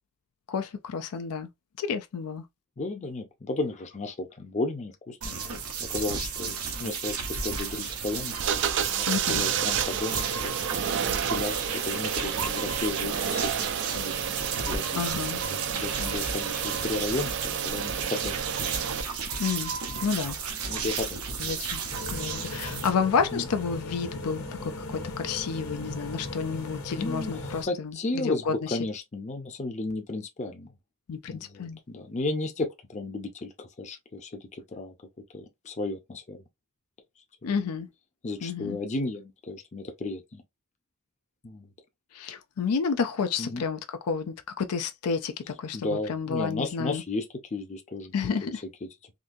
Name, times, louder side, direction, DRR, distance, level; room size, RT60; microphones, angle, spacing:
voice 1, 0.5-1.5 1.8-2.4 9.1-9.4 15.0-15.4 19.4-19.7 20.0-20.4 21.4-21.8 22.1-28.8 31.1-31.8 37.4-37.9 38.4-38.8 42.1-47.0 48.1-48.6, left 5 dB, 90° left, 0.4 m, -30 dB
voice 2, 2.8-10.5 10.8-14.3 14.6-19.3 19.9-20.1 20.6-21.5 23.3-23.4 26.9-30.7 31.3-34.9 35.3-36.4 37.4-37.6 38.2-40.4 41.4-41.7 43.4-43.6 45.7-47.2 47.5-48.1 48.4-48.5 48.8-48.9, left 2 dB, 30° left, 0.5 m, -34 dB
sound 1, 5.2-22.9, right 6 dB, 80° right, 0.9 m, -33 dB
sound 2, 8.4-19.0, right 8 dB, 55° right, 0.4 m, -31 dB
sound 3, 21.9-27.6, left 2 dB, 70° left, 1.3 m, -38 dB
3.7 x 2.7 x 2.6 m
head